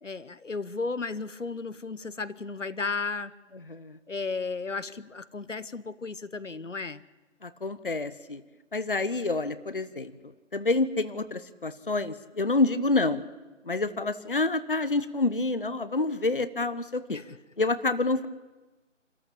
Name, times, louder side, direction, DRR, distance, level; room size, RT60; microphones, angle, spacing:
voice 1, 0.0-3.3 4.1-7.0 17.1-17.4, left 4 dB, 75° left, 15 dB, 1.0 m, -34 dB
voice 2, 3.7-4.0 7.4-8.4 8.7-10.1 10.5-13.2 13.6-17.2 17.6-18.3, left 3 dB, 45° left, 12 dB, 0.9 m, -28 dB
28.0 x 14.0 x 8.7 m, 1.2 s
figure-of-eight pair, 170°, 38 cm